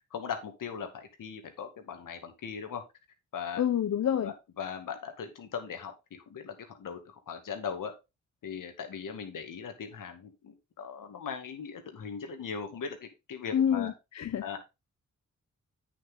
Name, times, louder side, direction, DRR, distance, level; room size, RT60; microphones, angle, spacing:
voice 1, 0.1-2.8 3.3-3.6 4.2-7.9 8.4-13.9 14.4-14.6, left 6 dB, 80° left, 2.2 m, -39 dB
voice 2, 3.6-4.3 13.5-14.6, left 9 dB, 55° left, 0.7 m, -28 dB
8.7 x 6.8 x 3.9 m
cardioid pair, 70°, 32 cm